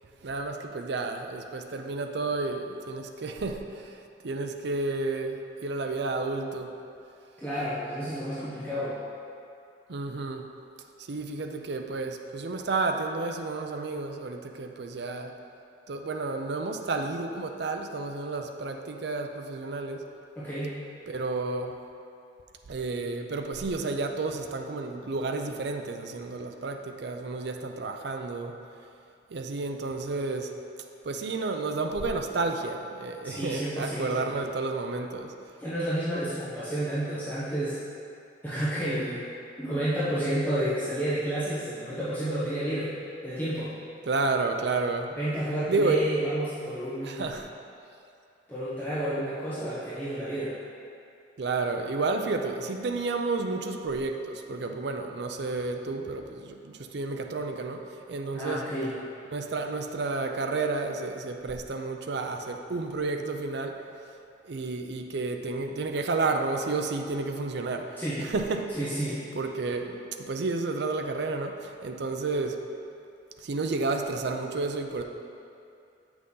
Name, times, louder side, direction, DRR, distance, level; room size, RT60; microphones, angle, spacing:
voice 1, 0.2-6.8 9.9-10.5 11.0-15.3 15.9-20.1 21.1-21.7 22.7-28.5 29.3-30.5 31.0-35.4 44.1-45.1 45.7-46.0 47.0-47.5 51.4-58.7 59.3-63.9 64.4-68.8 69.3-72.7 73.4-75.0, right 3 dB, 60° right, 4 dB, 0.5 m, -31 dB
voice 2, 7.4-9.0 20.4-20.7 33.2-34.3 35.6-37.8 38.4-39.2 39.6-42.9 43.2-43.7 45.2-47.3 48.5-50.5 58.3-59.0 68.0-68.2 68.8-69.2, right 1 dB, 10° left, -12 dB, 1.0 m, -30 dB
7.7 x 6.1 x 3.8 m, 2.6 s
head